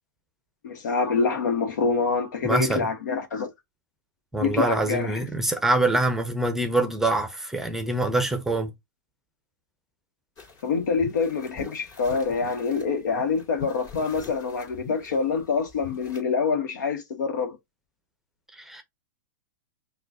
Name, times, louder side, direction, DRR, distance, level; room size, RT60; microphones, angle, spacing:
voice 1, 0.6-3.5 4.4-5.2 10.6-17.6, left 5 dB, 70° left, 1.2 m, -26 dB
voice 2, 2.4-2.9 4.3-8.7 18.6-18.8, right 2 dB, 5° right, 0.7 m, -25 dB
sound 1, 10.4-16.2, left 5 dB, 35° left, 2.4 m, -43 dB
6.0 x 2.4 x 2.7 m
hypercardioid pair, 120°, 10 cm